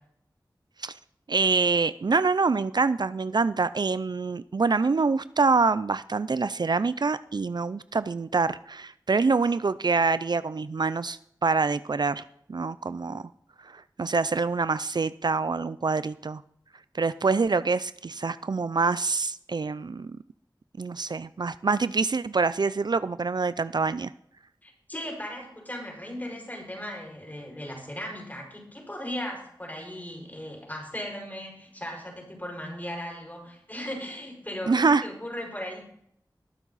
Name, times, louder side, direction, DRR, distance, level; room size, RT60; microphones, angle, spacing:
voice 1, 1.3-13.2 13.7-16.4 17.0-20.2 20.8-24.1 34.7-35.0, right 4 dB, 65° right, 15 dB, 0.4 m, -25 dB
voice 2, 24.6-35.9, left 1 dB, 20° left, 0 dB, 5.6 m, -37 dB
21.5 x 7.4 x 4.0 m, 0.71 s
wide cardioid pair, 45°, 8 cm